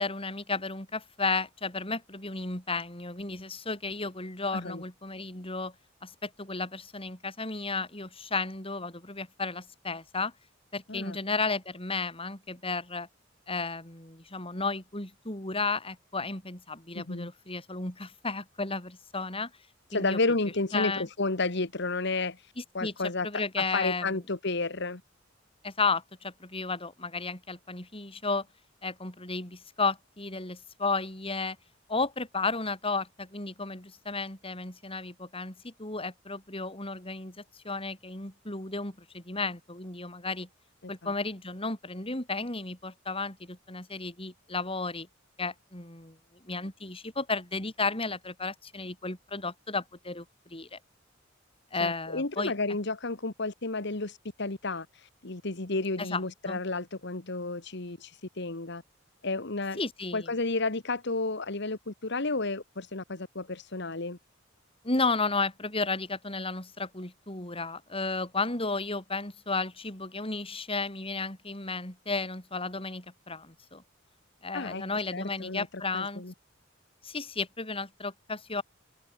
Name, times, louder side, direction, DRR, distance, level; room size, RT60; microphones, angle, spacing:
voice 1, 0.0-5.7 6.0-10.3 10.7-13.1 13.5-19.5 19.9-20.2 20.7-21.1 22.6-22.9 23.2-24.2 25.6-28.5 28.8-31.6 31.9-40.5 40.9-45.1 45.4-46.2 46.4-50.8 51.7-52.5 56.0-56.6 59.8-60.3 64.8-73.8 74.4-76.2 77.0-78.6, left 3 dB, 30° left, 6.7 m, -33 dB
voice 2, 16.9-17.3 19.9-25.0 51.8-58.8 59.2-59.8 60.1-64.2 74.5-74.8 75.1-75.7 75.9-76.3, left 3 dB, 60° left, 1.9 m, -32 dB
open air
head